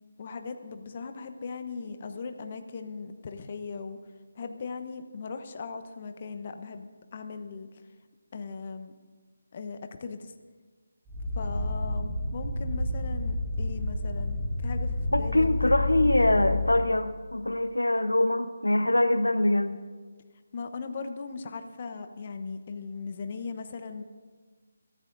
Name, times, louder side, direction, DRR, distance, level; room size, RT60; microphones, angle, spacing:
voice 1, 0.2-4.0 4.3-7.8 8.3-8.9 9.5-10.3 11.4-15.5 20.5-24.0, left 4 dB, 40° left, 8 dB, 0.9 m, -38 dB
sound 1, 11.1-16.8, left 2 dB, 15° right, 4.0 m, -30 dB
voice 2, 15.1-19.8, left 1 dB, 90° left, 11 dB, 0.9 m, -24 dB
24.0 x 14.5 x 2.6 m, 1.4 s
figure-of-eight pair, 155°, 0 cm